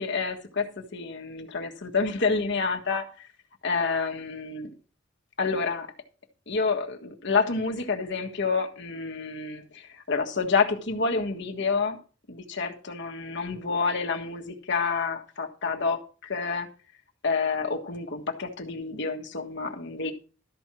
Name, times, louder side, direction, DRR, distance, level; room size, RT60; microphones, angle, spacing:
voice 1, 0.0-3.3 3.6-4.7 5.4-5.9 6.5-12.0 12.3-16.7 17.2-20.1, left 4 dB, 65° left, 1.5 m, -28 dB
13.0 x 4.5 x 6.1 m
head